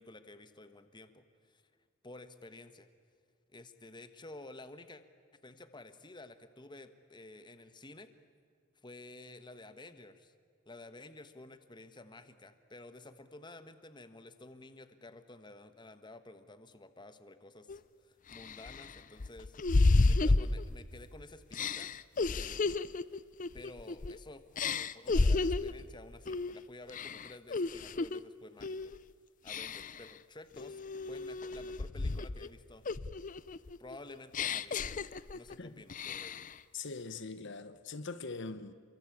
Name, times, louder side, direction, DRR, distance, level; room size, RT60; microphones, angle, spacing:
voice 1, 0.0-1.6 2.0-2.9 3.5-5.0 5.4-8.1 8.7-10.3 10.7-17.7 18.0-19.6 20.0-21.9 22.3-22.8 23.5-24.7 24.9-28.9 29.4-32.8 33.8-34.8 35.3-36.4, left 2 dB, 20° left, 1.3 m, -52 dB
sound 1, 17.7-17.8 18.3-21.0 21.5-24.2 24.6-25.8 26.3-26.6 26.9-28.2 28.6-29.0 29.5-30.1 30.6-32.5 32.9-35.5 35.9-36.5, left 3 dB, 40° left, 0.6 m, -32 dB
voice 2, 36.7-38.7, left 4 dB, 55° left, 1.0 m, -42 dB
28.5 x 23.5 x 8.6 m
head